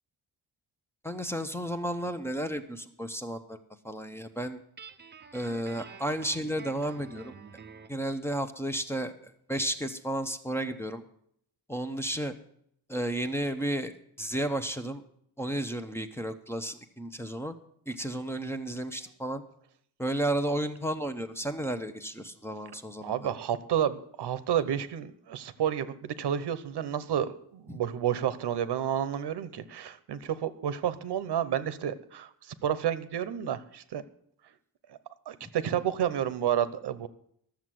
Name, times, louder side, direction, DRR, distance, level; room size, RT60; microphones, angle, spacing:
voice 1, 1.0-3.6 3.8-4.6 5.3-7.3 7.9-11.0 11.7-12.3 12.9-15.0 15.4-17.5 17.9-19.4 20.0-23.3 27.7-27.8 35.4-35.5, right 1 dB, 5° left, 8 dB, 0.7 m, -33 dB
Guitar, 4.8-8.0, right 5 dB, 25° right, 0.7 m, -48 dB
voice 2, 23.0-32.3 32.6-34.0 35.3-37.1, right 10 dB, 85° right, 13 dB, 1.0 m, -30 dB
12.5 x 7.4 x 7.6 m, 0.68 s
wide cardioid pair, 150°, 39 cm